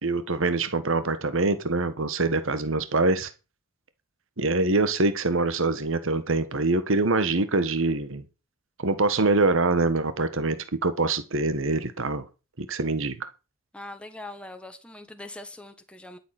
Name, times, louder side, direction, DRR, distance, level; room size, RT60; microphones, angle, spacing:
voice 1, 0.0-3.3 4.4-8.2 8.8-12.2 12.6-13.3, right 3 dB, 70° right, 1.4 m, -24 dB
voice 2, 13.7-16.2, left 1 dB, 5° left, 1.3 m, -42 dB
12.0 x 7.5 x 6.0 m
head